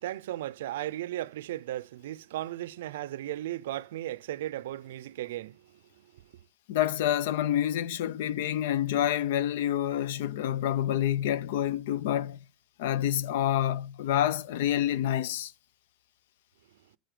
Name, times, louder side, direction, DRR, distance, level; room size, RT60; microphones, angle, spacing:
voice 1, 0.0-5.8, right 14 dB, 80° right, 0.4 m, -36 dB
voice 2, 6.7-12.4 12.8-15.5, left 11 dB, 70° left, 0.5 m, -28 dB
9.2 x 3.9 x 6.7 m
supercardioid pair, 135°, 0 cm